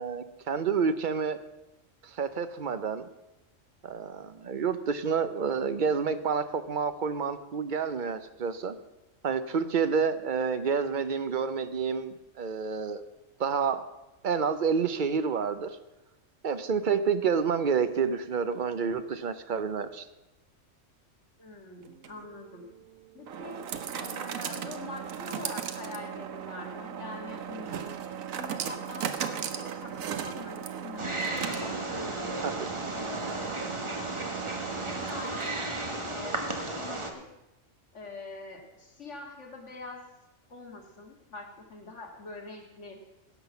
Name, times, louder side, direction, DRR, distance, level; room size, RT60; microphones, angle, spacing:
voice 1, 0.0-1.4 2.0-3.1 3.8-8.8 9.2-13.0 13.4-13.8 14.2-15.8 16.4-20.1 32.4-32.7, right 6 dB, 45° right, 11 dB, 0.8 m, -29 dB
voice 2, 21.4-22.7 23.1-23.6 23.9-27.9 28.4-32.4 32.9-33.5 34.8-35.6 36.0-37.3 37.9-40.0 40.5-43.0, left 3 dB, 60° left, 1 dB, 2.3 m, -44 dB
sound 1, 21.8-35.8, right 8 dB, 85° right, 1.2 m, -37 dB
Wild animals, 31.0-37.1, right 2 dB, 25° right, 1.2 m, -34 dB
16.0 x 6.2 x 7.0 m, 0.97 s
omnidirectional pair, 1.4 m